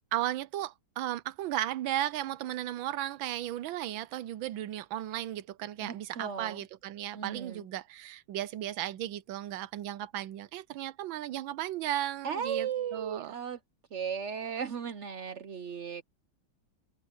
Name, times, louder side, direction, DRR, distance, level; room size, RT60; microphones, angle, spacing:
voice 1, 0.1-13.3, right 13 dB, 85° right, 1.4 m, -35 dB
voice 2, 5.8-6.6 7.1-7.6 12.2-13.6 13.9-16.0, right 7 dB, 70° right, 0.6 m, -36 dB
omnidirectional pair, 2.1 m